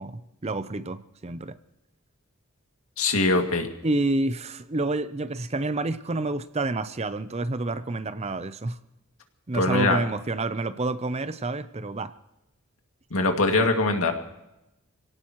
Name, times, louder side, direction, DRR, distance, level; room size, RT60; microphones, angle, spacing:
voice 1, 0.0-1.5 3.8-8.8 9.5-12.1, right 2 dB, 30° right, 0.6 m, -28 dB
voice 2, 3.0-3.7 9.5-10.0 13.1-14.1, left 3 dB, 80° left, 2.3 m, -22 dB
26.5 x 17.5 x 3.1 m
head